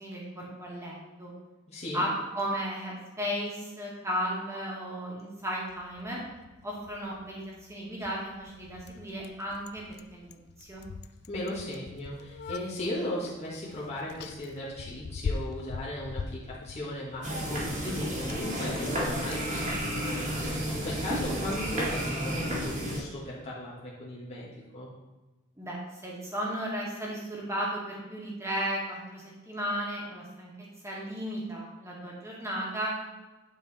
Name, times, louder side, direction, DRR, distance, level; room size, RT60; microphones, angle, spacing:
voice 1, 0.0-1.3 1.9-6.2 6.6-10.8 25.6-30.5 30.8-32.9, equal, 15° right, -4 dB, 1.9 m, -35 dB
voice 2, 1.7-2.0 11.3-24.9, left 1 dB, 30° left, -7 dB, 1.5 m, -37 dB
Bicycle, 5.7-22.0, left 4 dB, 50° left, 0.3 m, -43 dB
sound 1, 17.2-23.0, equal, 35° right, 1.9 m, -32 dB
9.5 x 4.7 x 4.2 m, 1.1 s
head